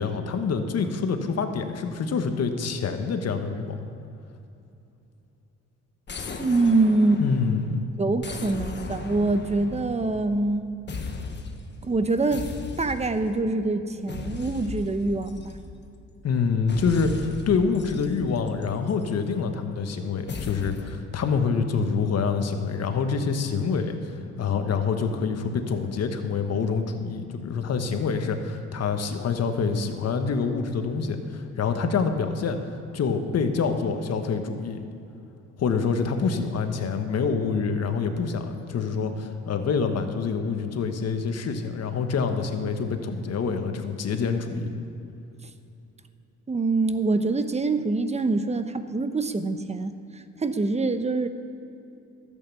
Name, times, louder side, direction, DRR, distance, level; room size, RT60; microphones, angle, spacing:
voice 1, 0.0-3.8 7.2-7.8 16.2-24.0 24.4-32.6 32.9-34.8 35.6-44.7, left 5 dB, 55° left, 6 dB, 1.3 m, -26 dB
sound 1, 6.1-7.7 8.2-10.6 10.9-11.7 12.3-13.3 14.1-16.0 16.7-19.1 20.3-21.0, left 4 dB, 35° left, 1.1 m, -37 dB
voice 2, 6.4-7.2 8.0-10.7 11.8-12.5 12.8-15.6 46.5-51.3, right 3 dB, 20° right, 9 dB, 0.8 m, -25 dB
12.5 x 8.5 x 7.0 m, 2.8 s
cardioid pair, 90°, 30 cm